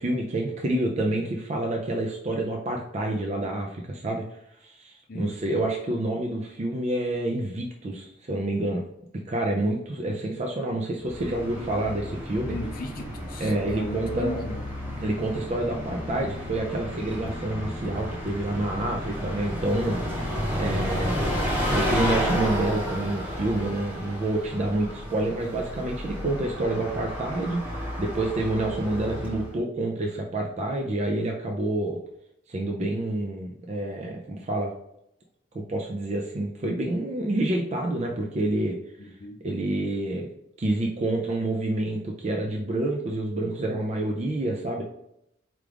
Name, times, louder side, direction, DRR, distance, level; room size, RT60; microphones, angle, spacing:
voice 1, 0.0-4.2 4.6-8.8 9.3-12.5 13.4-14.4 15.0-20.0 20.5-27.7 28.0-32.0 32.5-34.7 35.5-38.8 39.4-40.3 40.6-44.8, right 1 dB, 35° right, 1 dB, 0.4 m, -28 dB
Bus, 11.0-29.6, equal, 10° right, 0.9 m, -32 dB
voice 2, 12.5-14.6 39.0-39.4, left 1 dB, 45° left, 5 dB, 0.5 m, -36 dB
4.6 x 2.4 x 3.4 m, 0.79 s
head